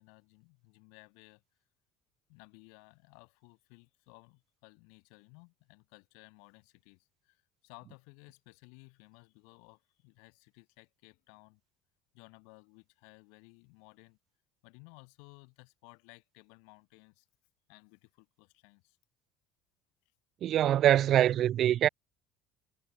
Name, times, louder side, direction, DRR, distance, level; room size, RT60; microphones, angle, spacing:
voice 1, 0.0-1.4 2.3-11.6 12.1-14.2 14.6-17.3 17.7-19.0, left 40 dB or more, 60° left, 7.8 m, -58 dB
voice 2, 20.4-21.9, right 11 dB, 45° right, 0.6 m, -24 dB
figure-of-eight pair, 60°, 0 cm